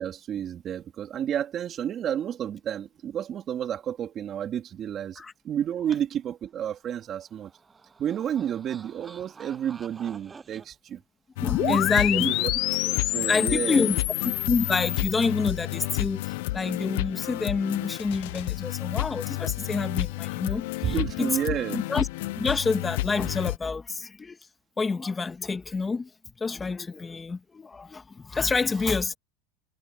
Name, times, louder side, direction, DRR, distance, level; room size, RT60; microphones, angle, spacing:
voice 1, 0.0-7.5 8.0-11.0 11.6-11.8 12.1-12.5 12.8-13.9 20.8-21.8, right 9 dB, 35° right, 3.2 m, -31 dB
sound 1, 6.8-10.7, right 5 dB, 20° right, 7.6 m, -49 dB
sound 2, 11.4-23.6, left 20 dB, 75° left, 0.4 m, -31 dB
voice 2, 11.4-12.3 13.3-14.0 14.2-21.4 21.7-22.1 22.4-24.4 24.8-26.1 26.4-29.2, left 4 dB, 15° left, 2.2 m, -28 dB
sound 3, 11.5-15.1, left 16 dB, 50° left, 1.7 m, -28 dB
supercardioid pair, 130°, 0 cm